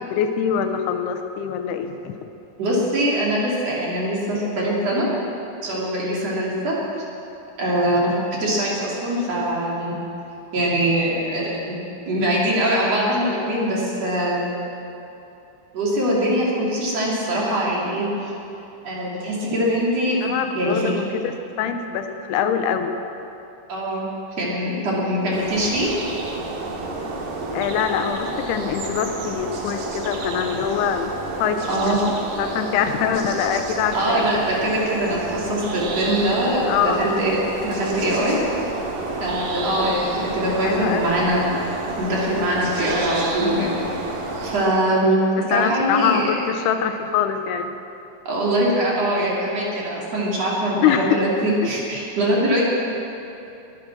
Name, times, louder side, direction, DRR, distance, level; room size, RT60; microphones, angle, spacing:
voice 1, 0.0-2.2 20.2-20.9 21.2-22.9 27.5-31.1 31.4-32.1 32.4-34.2 36.7-37.0 40.6-41.2 43.4-43.7 45.4-47.7 50.8-51.2, left 8 dB, 85° left, 7 dB, 2.8 m, -24 dB
voice 2, 2.6-5.1 5.6-6.8 7.6-8.1 8.4-10.0 10.5-11.8 12.1-14.5 15.7-18.3 18.8-20.2 20.6-20.9 23.7-24.1 24.4-25.9 31.7-32.0 33.9-38.4 39.2-41.5 42.0-44.0 44.4-45.2 45.5-46.4 48.3-52.6, right 1 dB, 45° right, -5 dB, 3.5 m, -22 dB
sound 1, 25.3-44.6, right 2 dB, 80° right, 3.7 m, -30 dB
21.5 x 9.2 x 6.1 m, 2.9 s
omnidirectional pair, 4.6 m